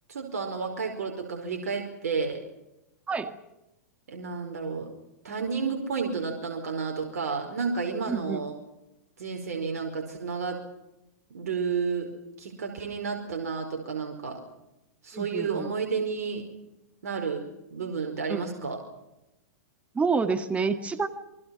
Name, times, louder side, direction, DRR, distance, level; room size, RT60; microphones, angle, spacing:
voice 1, 0.1-2.4 4.1-4.9 5.2-8.5 9.2-10.6 11.3-12.1 12.4-14.4 15.0-16.4 17.0-17.4 17.7-18.8, right 5 dB, 75° right, 3 dB, 5.0 m, -31 dB
voice 2, 8.1-8.4 15.1-15.7 18.3-18.4 20.0-21.1, right 4 dB, 15° right, 9 dB, 2.0 m, -28 dB
28.5 x 23.0 x 6.0 m, 0.93 s
hypercardioid pair, 115°, 9 cm